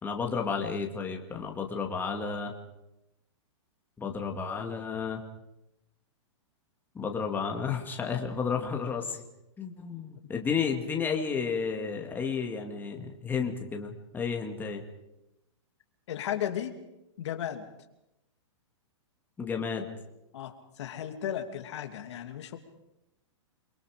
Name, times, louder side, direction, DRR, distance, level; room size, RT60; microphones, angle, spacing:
voice 1, 0.0-2.5 4.0-5.2 6.9-9.2 9.6-14.8 19.4-19.9, left 6 dB, 10° left, 2 dB, 2.4 m, -32 dB
voice 2, 16.1-16.8 17.2-17.7 20.3-22.6, left 10 dB, 65° left, 6 dB, 2.7 m, -35 dB
29.0 x 23.0 x 5.2 m, 0.92 s
hypercardioid pair, 140°, 16 cm